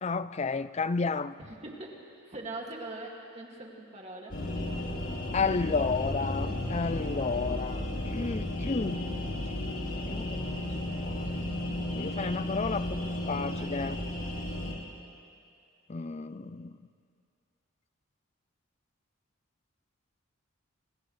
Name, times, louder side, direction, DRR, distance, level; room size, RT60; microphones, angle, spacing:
voice 1, 0.0-1.3 5.3-9.1 10.0-10.5 10.9-11.5 11.9-14.0 15.9-16.7, left 4 dB, 30° left, 14 dB, 0.4 m, -32 dB
voice 2, 1.4-4.4 11.9-13.9, right 2 dB, 30° right, -1 dB, 2.2 m, -44 dB
sound 1, 4.3-14.7, left 1 dB, 65° left, 3.7 m, -34 dB
29.0 x 27.5 x 3.2 m, 2.5 s
head